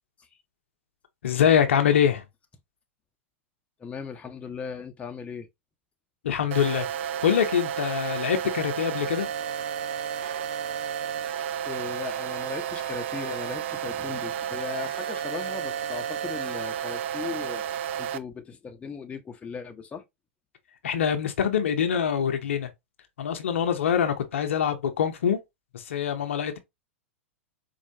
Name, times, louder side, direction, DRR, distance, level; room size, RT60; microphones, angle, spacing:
voice 1, 1.2-2.2 6.2-6.9 7.2-9.3 20.8-22.7 23.2-25.4 25.7-26.6, left 8 dB, 70° left, 0.7 m, -24 dB
voice 2, 3.8-5.5 11.6-20.0, left 6 dB, 20° left, 0.7 m, -38 dB
sound 1, 6.5-18.2, right 9 dB, 60° right, 0.4 m, -32 dB
4.4 x 2.4 x 2.7 m
hypercardioid pair, 100°, 7 cm